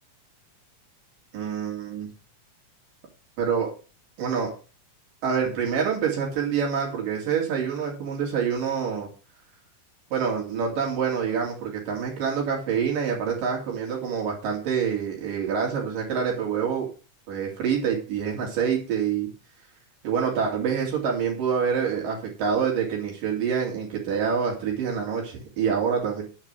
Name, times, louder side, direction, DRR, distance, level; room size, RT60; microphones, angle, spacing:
voice 1, 1.3-2.1 3.4-3.7 4.2-4.5 5.2-9.1 10.1-16.9 17.3-19.3 20.0-26.2, right 7 dB, 85° right, -2 dB, 4.3 m, -26 dB
9.9 x 5.0 x 7.6 m, 0.36 s
omnidirectional pair, 3.7 m